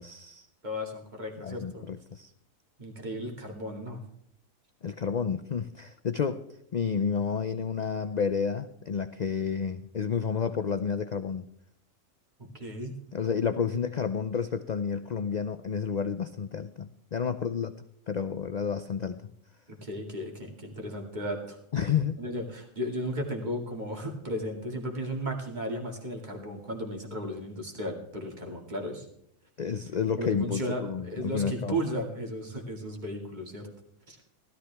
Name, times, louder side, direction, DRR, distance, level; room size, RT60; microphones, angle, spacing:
voice 1, 0.0-0.5 1.4-2.3 4.8-6.4 6.7-11.5 13.1-17.7 18.1-19.2 21.7-22.1 29.6-31.8, left 6 dB, 85° left, 11 dB, 0.3 m, -30 dB
voice 2, 0.6-1.8 2.8-4.0 12.5-13.0 19.8-21.6 22.2-29.1 30.2-33.7 34.1-34.2, equal, 30° right, 2 dB, 2.4 m, -35 dB
16.0 x 13.0 x 3.4 m, 0.76 s
omnidirectional pair, 1.4 m